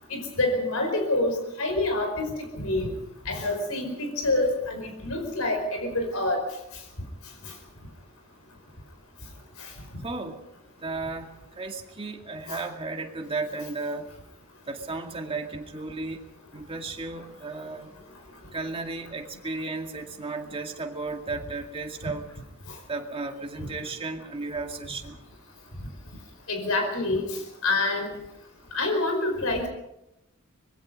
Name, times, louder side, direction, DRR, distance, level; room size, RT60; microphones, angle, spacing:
voice 1, 0.1-2.3 2.5-2.9 3.2-6.4 9.6-9.7 12.5-12.6 26.5-28.1 28.7-29.7, left 2 dB, 75° left, 4 dB, 5.1 m, -27 dB
voice 2, 10.0-10.4 10.8-11.3 11.6-14.1 14.7-16.2 16.5-18.0 18.5-22.3 22.9-25.2, right 3 dB, 25° right, 3 dB, 2.2 m, -34 dB
25.0 x 21.0 x 5.3 m, 0.87 s
head